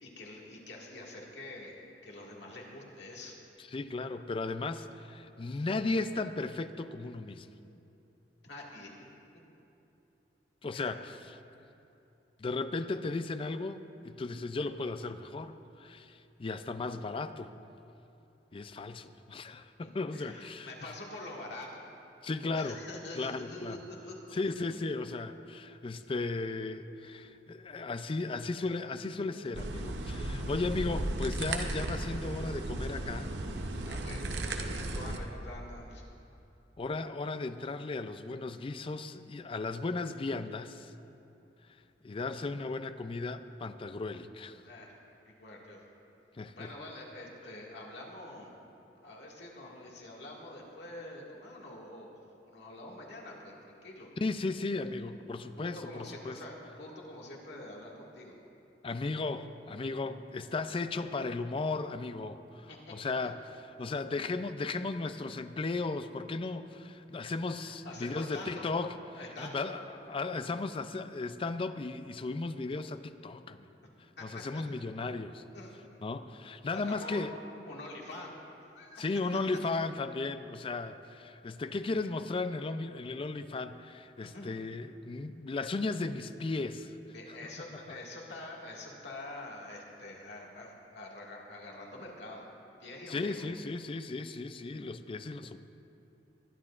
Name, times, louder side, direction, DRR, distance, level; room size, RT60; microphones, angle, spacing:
voice 1, 0.0-3.4 8.4-8.9 10.7-10.9 19.8-21.8 22.6-24.5 30.9-31.0 33.8-36.0 44.7-45.0 45.3-45.8 46.6-48.6 49.0-54.1 55.6-58.4 62.7-62.9 67.7-68.6 69.2-69.7 74.2-74.3 74.5-74.6 75.5-75.7 76.7-77.3 77.7-78.3 78.7-79.0 84.2-84.6 87.1-92.4 92.8-93.5, left 1 dB, 75° left, -2 dB, 2.0 m, -46 dB
voice 2, 3.6-7.5 10.6-11.2 12.4-17.5 18.5-20.9 22.2-22.8 23.2-23.8 24.3-33.3 35.0-35.2 36.8-40.9 42.0-44.6 46.4-46.7 54.2-56.4 58.8-68.9 69.4-73.7 74.2-75.4 76.0-77.3 79.0-87.0 87.3-87.4 93.1-95.6, left 3 dB, 30° left, 11 dB, 0.4 m, -36 dB
sound 1, 29.5-35.2, right 2 dB, 75° right, 0.8 m, -35 dB
21.0 x 11.0 x 2.5 m, 2.8 s
head